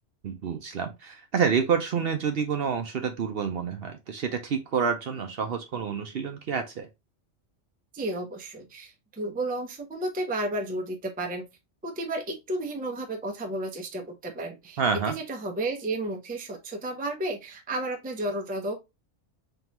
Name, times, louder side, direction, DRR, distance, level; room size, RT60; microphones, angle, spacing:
voice 1, 0.2-6.9 14.8-15.2, right 6 dB, 60° right, 0.8 m, -28 dB
voice 2, 7.9-11.4 11.8-14.8 15.1-18.8, right 1 dB, 10° right, 0.4 m, -32 dB
3.7 x 3.0 x 2.9 m
omnidirectional pair, 1.3 m